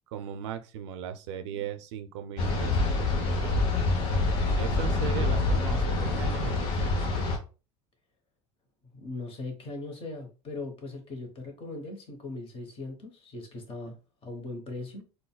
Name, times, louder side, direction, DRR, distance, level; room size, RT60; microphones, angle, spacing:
voice 1, 0.1-3.9 4.5-7.1, right 9 dB, 90° right, 0.4 m, -38 dB
sound 1, 2.4-7.4, left 2 dB, 70° left, 0.8 m, -26 dB
voice 2, 8.9-13.9 14.2-15.0, left 2 dB, 40° left, 1.1 m, -39 dB
3.9 x 2.2 x 2.3 m
supercardioid pair, 95°, 15 cm